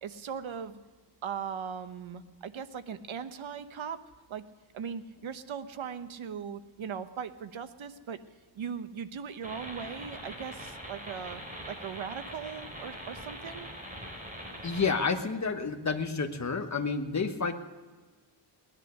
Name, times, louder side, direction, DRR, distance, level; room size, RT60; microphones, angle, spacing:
voice 1, 0.0-0.8 1.2-4.0 4.3-4.4 4.7-8.2 8.5-11.4 11.7-13.7, right 7 dB, 80° right, 10 dB, 1.0 m, -39 dB
sound 1, 9.4-14.9, equal, 15° right, 3.8 m, -43 dB
voice 2, 14.6-17.5, left 4 dB, 35° left, 6 dB, 1.3 m, -30 dB
19.0 x 11.0 x 6.4 m, 1.3 s
wide cardioid pair, 120°, 47 cm